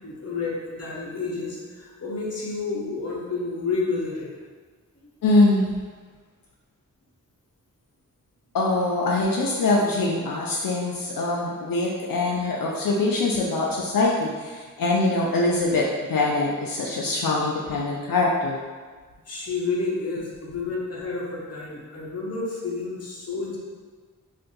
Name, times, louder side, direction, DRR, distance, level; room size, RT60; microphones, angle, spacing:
voice 1, 0.0-4.3 19.3-23.6, left 3 dB, 45° left, -4 dB, 0.8 m, -30 dB
voice 2, 5.2-5.7 8.5-18.6, left 2 dB, 80° left, -3 dB, 0.5 m, -23 dB
2.5 x 2.5 x 3.8 m, 1.5 s
wide cardioid pair, 75°, 34 cm